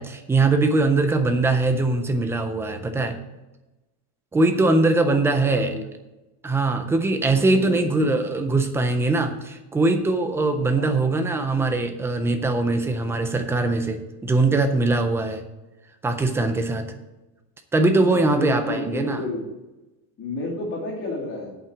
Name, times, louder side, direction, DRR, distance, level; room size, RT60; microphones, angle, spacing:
voice 1, 0.0-3.2 4.3-5.7 6.4-15.4 16.0-16.9 17.7-19.2, right 2 dB, 5° right, 7 dB, 0.3 m, -21 dB
voice 2, 5.0-5.9 7.5-8.2 10.7-11.0 18.3-19.5 20.2-21.6, left 2 dB, 30° left, -8 dB, 2.6 m, -31 dB
8.6 x 5.5 x 7.6 m, 1.0 s
cardioid pair, 160°, 45 cm